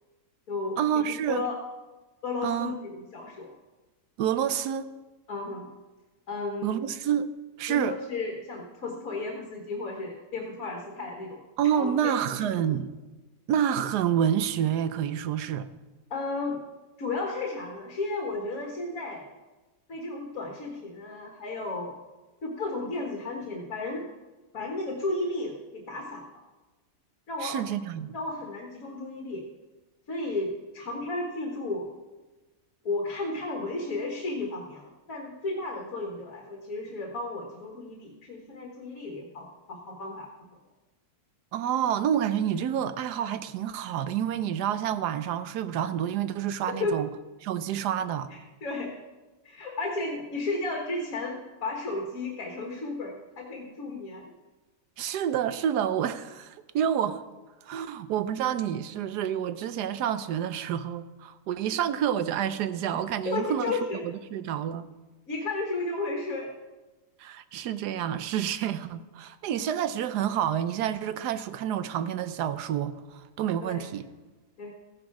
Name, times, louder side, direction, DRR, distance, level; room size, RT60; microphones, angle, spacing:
voice 1, 0.8-1.5 2.4-2.7 4.2-4.9 6.6-7.3 7.6-8.0 11.6-12.9 13.5-15.7 27.4-28.2 41.5-47.1 47.4-48.3 55.0-57.2 57.7-63.8 64.0-64.9 67.2-74.1, right 9 dB, 85° right, 1.3 m, -28 dB
voice 2, 1.3-1.6 2.2-3.5 5.3-5.7 6.3-6.8 7.7-11.4 11.8-12.8 16.1-16.6 17.0-19.3 19.9-21.9 22.4-24.1 24.5-26.2 27.3-27.6 28.1-29.4 30.1-31.9 32.9-40.3 46.7-47.0 48.3-48.9 49.4-54.2 63.3-64.0 65.3-66.5 73.6-73.9 74.6-74.7, left 3 dB, 60° left, 1.9 m, -33 dB
14.5 x 10.0 x 4.8 m
omnidirectional pair, 1.7 m